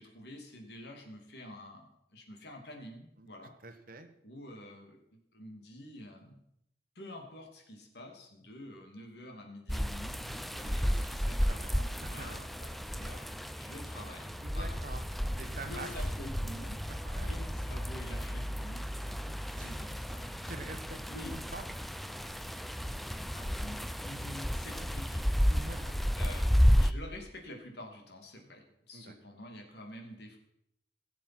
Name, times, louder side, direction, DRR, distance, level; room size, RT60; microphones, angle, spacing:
voice 1, 0.0-3.5 4.2-5.0 5.3-6.4 7.0-13.2 13.5-14.3 14.5-14.8 15.7-16.8 17.3-18.9 19.5-20.5 21.1-21.3 23.3-25.3 26.2-30.4, left 1 dB, 65° left, 2 dB, 2.5 m, -48 dB
voice 2, 3.6-4.1 10.7-11.8 12.0-12.5 14.4-15.0 15.4-16.1 16.9-17.3 19.3-19.7 20.5-21.0 21.3-21.6 25.5-26.0 28.9-29.1, right 3 dB, 50° right, 7 dB, 1.3 m, -46 dB
sound 1, 9.7-26.9, equal, ahead, 0.4 m, -32 dB
16.5 x 7.4 x 6.0 m, 0.78 s
head